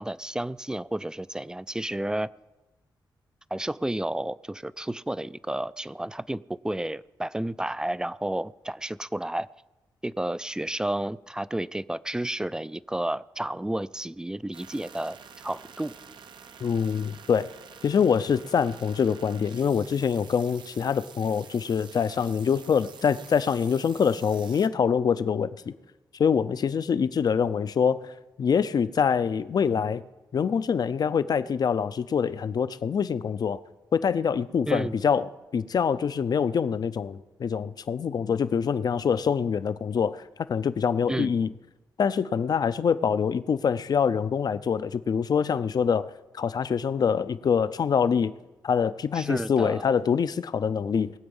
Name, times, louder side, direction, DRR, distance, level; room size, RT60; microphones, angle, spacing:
voice 1, 0.0-2.3 3.5-9.5 10.0-15.9 34.7-34.9 41.1-41.3 49.1-50.0, right 1 dB, 10° right, 0.3 m, -31 dB
sound 1, 14.5-24.7, right 6 dB, 75° right, 0.8 m, -48 dB
voice 2, 16.6-17.5 17.8-25.7 26.2-28.1 28.4-30.0 30.3-33.6 33.9-40.2 40.5-41.5 42.0-48.3 48.6-51.1, left 6 dB, 55° left, 0.5 m, -25 dB
20.5 x 7.9 x 5.5 m
cardioid pair, 90°, 8 cm